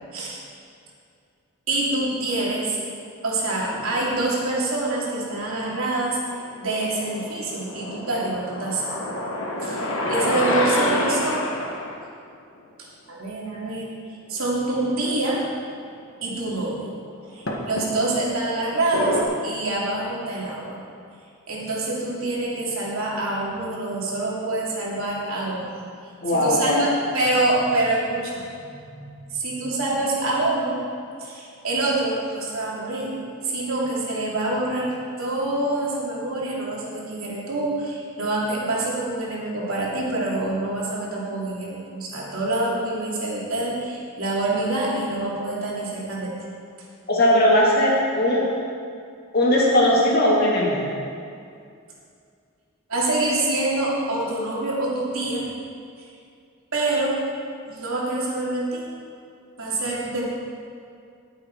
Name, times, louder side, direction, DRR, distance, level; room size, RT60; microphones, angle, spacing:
voice 1, 0.1-0.4 1.7-2.8 3.2-9.2 9.6-11.5 13.1-13.9 14.3-15.5 16.2-16.9 17.3-20.8 21.5-25.8 26.3-28.4 28.8-30.8 31.2-33.1 33.4-46.3 52.9-55.5 56.0-56.1 56.7-57.2 57.7-58.9 59.6-60.2, right 2 dB, 75° right, -5 dB, 3.0 m, -26 dB
sound 1, 3.6-4.2 5.0-5.9 6.3-12.0 14.4-14.5 14.8-14.9 15.8-15.9 17.5-18.3 18.9-19.2, left 1 dB, 65° left, 1.6 m, -28 dB
voice 2, 26.2-26.8 47.1-48.4 49.3-50.9, left 1 dB, 45° left, -5 dB, 2.9 m, -19 dB
19.5 x 7.3 x 4.9 m, 2.4 s
head